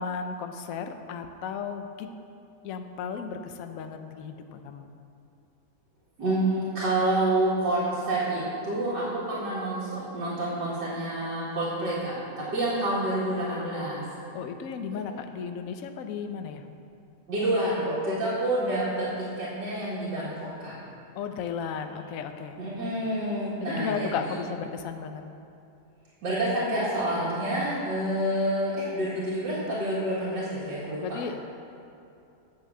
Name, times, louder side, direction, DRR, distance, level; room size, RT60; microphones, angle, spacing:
voice 1, 0.0-2.1 2.6-4.9 14.3-16.6 21.1-22.6 23.6-25.3 31.0-31.3, left 6 dB, 60° left, 6 dB, 1.0 m, -34 dB
voice 2, 6.2-14.0 17.3-20.7 22.6-24.4 26.2-31.2, right 1 dB, 75° right, -10 dB, 2.5 m, -28 dB
8.6 x 6.5 x 7.2 m, 2.7 s
omnidirectional pair, 1.9 m